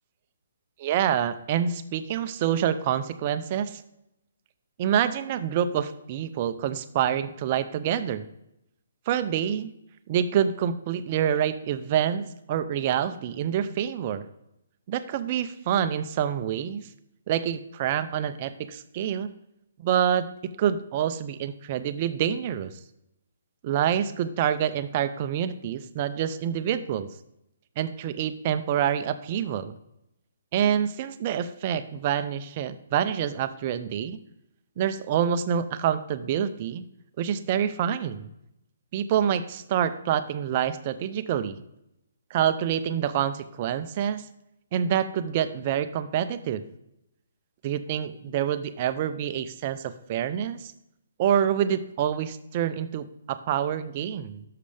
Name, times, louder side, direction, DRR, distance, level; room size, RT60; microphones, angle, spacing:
voice 1, 0.8-3.8 4.8-8.3 9.1-9.7 10.1-14.2 14.9-16.9 17.3-19.3 19.8-20.3 20.6-22.7 23.6-27.1 27.8-29.7 30.5-34.2 34.8-36.8 37.2-38.3 38.9-41.6 42.3-44.2 44.7-46.6 47.6-50.7 51.2-54.4, right 9 dB, 40° right, 11 dB, 0.6 m, -27 dB
11.0 x 6.7 x 3.4 m, 0.81 s
hypercardioid pair, 145°, 0 cm